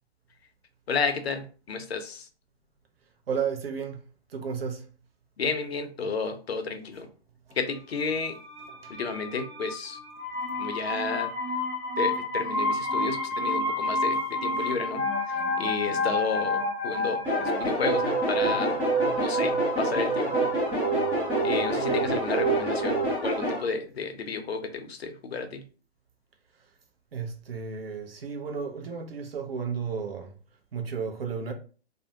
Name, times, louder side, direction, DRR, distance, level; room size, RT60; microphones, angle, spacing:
voice 1, 0.9-2.3 5.4-7.1 7.6-8.4 8.9-10.0 10.6-11.3 12.0-18.7 19.1-20.5 21.4-23.0 23.2-25.6, left 4 dB, 65° left, 0.6 m, -32 dB
voice 2, 3.3-4.0 4.3-4.9 8.7-9.0 26.6-26.7 27.1-30.3 30.7-31.5, right 6 dB, 60° right, 0.7 m, -33 dB
sound 1, 7.9-23.1, right 1 dB, 40° right, 1.2 m, -29 dB
sound 2, 17.2-23.6, equal, 5° right, 0.4 m, -29 dB
2.5 x 2.1 x 2.7 m
figure-of-eight pair, 125°, 34 cm